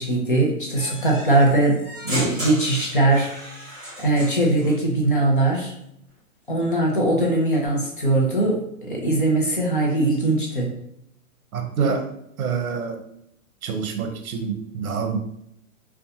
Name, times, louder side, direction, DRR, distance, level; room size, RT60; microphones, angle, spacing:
voice 1, 0.0-1.8 2.0-3.3 4.0-5.7 6.5-10.7, right 2 dB, 40° left, -1 dB, 0.4 m, -20 dB
sound 1, 0.7-4.8, equal, 5° right, 1.2 m, -35 dB
voice 2, 11.5-12.1 12.4-13.0 13.6-15.2, right 5 dB, 70° right, 5 dB, 0.7 m, -26 dB
2.5 x 2.2 x 2.7 m, 0.74 s
hypercardioid pair, 180°, 45 cm